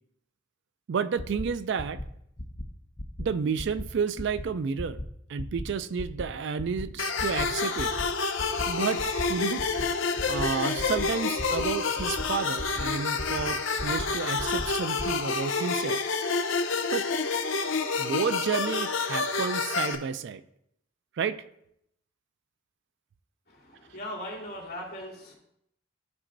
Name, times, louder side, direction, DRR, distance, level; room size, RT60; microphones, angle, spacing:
voice 1, 0.9-2.0 3.2-5.0 5.3-7.9 8.7-9.6 10.2-16.0 16.9-17.1 18.0-20.4 21.2-21.4, right 6 dB, 60° right, 14 dB, 0.4 m, -31 dB
sound 1, 1.2-1.4 1.8-2.0 2.4-2.6 3.0-3.2 3.6-3.8 4.2-4.4 4.8-5.0 5.4-5.6 6.0-6.2 6.6-6.8 7.2-7.4 7.8-8.0 8.4-8.7 9.0-9.2 9.6-9.8 10.2-10.4 10.8-11.0 11.4-11.6 12.0-12.2 12.6-12.8 13.2-13.4 13.8-14.0 14.4-14.6 15.0-15.1, left 1 dB, 20° left, 0.6 m, -35 dB
sound 2, 7.0-19.9, left 4 dB, 75° left, 0.7 m, -28 dB
voice 2, 23.5-25.4, left 1 dB, 55° left, -4 dB, 2.5 m, -39 dB
13.0 x 4.3 x 2.6 m, 0.74 s
head